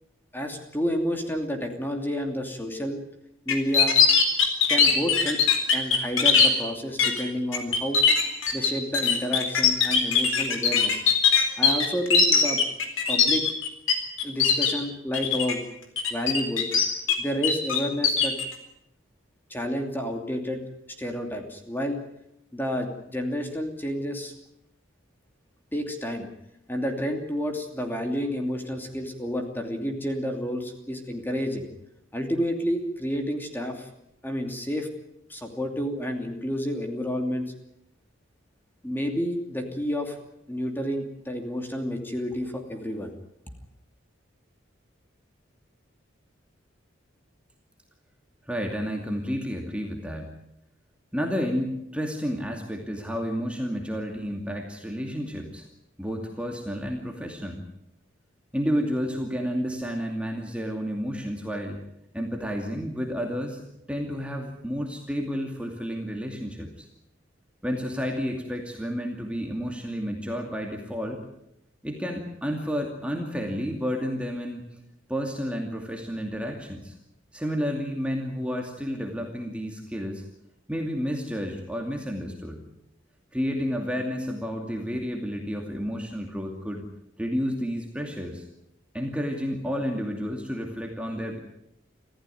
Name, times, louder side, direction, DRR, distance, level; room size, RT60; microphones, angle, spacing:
voice 1, 0.3-3.0 3.5-3.9 4.7-5.4 5.7-8.0 8.5-11.0 11.6-12.6 13.1-13.5 14.2-15.6 16.1-16.7 17.2-18.3 19.5-20.6 21.0-22.0 22.5-24.3 25.7-26.3 26.7-31.7 32.1-33.9 34.2-34.9 35.3-37.5 38.8-40.2 40.5-43.1, equal, 10° left, 4 dB, 2.8 m, -30 dB
sound 1, 3.5-6.5 7.0-7.2 7.5-13.9 14.2-14.7 15.1-15.5 16.0-17.2 17.4-18.4, left 6 dB, 85° left, 4.1 m, -20 dB
voice 2, 48.5-50.4 51.1-55.7 56.0-57.6 58.5-61.8 62.1-63.6 63.9-66.9 67.6-71.2 71.8-74.6 75.1-76.9 77.3-80.2 80.7-82.6 83.3-86.8 87.2-88.4 88.9-91.4, equal, 5° right, 1 dB, 2.5 m, -31 dB
26.0 x 15.5 x 9.4 m, 0.79 s
head